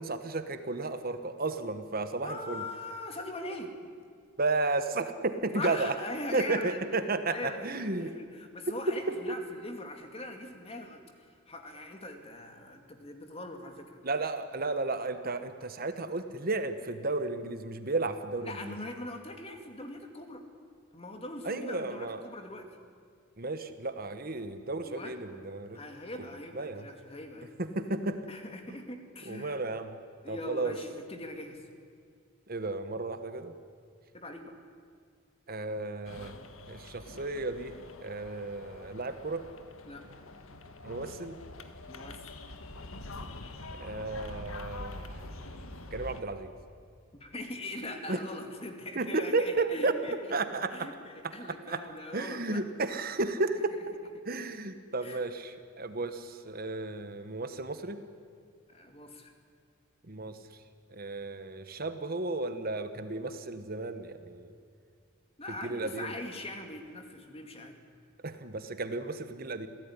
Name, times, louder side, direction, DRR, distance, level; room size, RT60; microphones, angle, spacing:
voice 1, 0.0-2.6 4.4-5.9 6.3-8.1 9.1-9.2 14.0-18.7 21.4-22.2 23.4-25.8 26.5-26.8 27.6-28.2 28.7-28.8 29.2-30.0 30.3-30.7 32.5-33.5 35.5-36.3 36.7-37.7 38.0-39.4 40.8-41.4 43.8-45.2 45.9-46.5 48.1-48.2 48.9-50.9 51.7-54.0 54.2-58.0 60.1-60.4 60.9-64.5 65.6-66.1 68.2-69.7, right 3 dB, 45° right, 9 dB, 1.2 m, -33 dB
voice 2, 2.2-3.7 5.5-6.8 7.3-14.0 18.4-20.5 20.9-22.7 24.8-25.2 25.7-27.5 28.3-29.6 30.2-31.6 34.1-34.5 39.9-40.1 41.9-42.2 47.1-50.3 50.7-52.6 55.0-55.2 58.7-59.3 65.4-67.8, left 1 dB, 30° left, 5 dB, 2.4 m, -41 dB
sound 1, 36.0-46.2, left 2 dB, 80° left, 1.7 m, -45 dB
27.0 x 17.0 x 9.9 m, 2.1 s
head